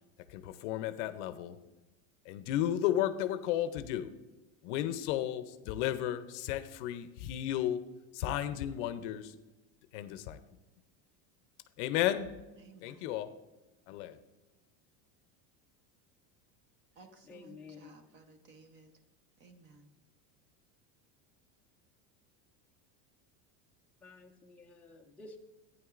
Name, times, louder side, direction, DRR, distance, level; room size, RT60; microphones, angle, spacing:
voice 1, 0.3-1.6 2.2-4.1 4.6-7.8 8.1-9.4 9.9-10.4 11.8-12.3 12.8-13.3 13.9-14.2, left 12 dB, 60° left, 11 dB, 0.6 m, -33 dB
voice 2, 12.6-13.1 17.0-18.9 19.4-19.9, right 4 dB, 25° right, 8 dB, 0.8 m, -57 dB
voice 3, 17.2-18.0 24.0-25.4, left 4 dB, 5° left, -2 dB, 0.4 m, -52 dB
12.5 x 9.5 x 2.5 m, 1.1 s
cardioid pair, 175°, 41 cm